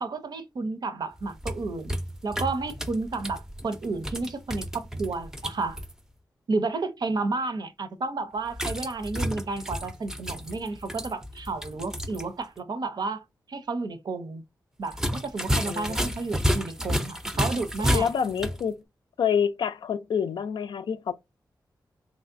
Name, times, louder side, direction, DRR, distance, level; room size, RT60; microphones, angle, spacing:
voice 1, 0.0-1.9 2.2-5.8 6.5-13.2 13.5-14.4 14.8-18.1, right 3 dB, 65° right, 0.6 m, -31 dB
sound 1, 1.2-5.9 8.5-12.3 12.6-12.7 14.9-18.6, equal, 5° right, 0.5 m, -31 dB
voice 2, 15.6-16.1 17.9-18.8 19.2-21.1, left 7 dB, 80° left, 0.4 m, -27 dB
3.2 x 2.6 x 2.5 m
cardioid pair, 60°, 8 cm